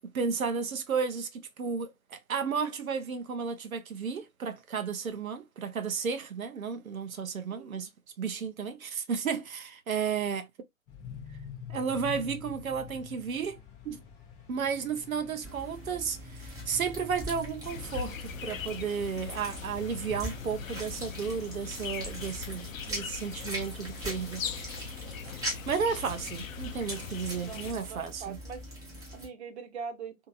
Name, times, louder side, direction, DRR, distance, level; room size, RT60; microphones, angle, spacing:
voice 1, 0.0-7.9 8.2-10.5 11.7-14.0 14.5-24.5 25.3-28.4, right 6 dB, 80° right, 0.8 m, -33 dB
voice 2, 7.5-7.9 25.7-26.0 27.4-28.7 29.1-30.2, right 6 dB, 50° right, 1.0 m, -42 dB
sound 1, 10.9-18.8, left 7 dB, 15° left, 0.5 m, -46 dB
sound 2, 15.4-29.3, right 1 dB, 10° right, 0.9 m, -42 dB
sound 3, 17.6-27.7, left 7 dB, 70° left, 0.6 m, -40 dB
2.8 x 2.8 x 2.3 m
figure-of-eight pair, 125°, 41 cm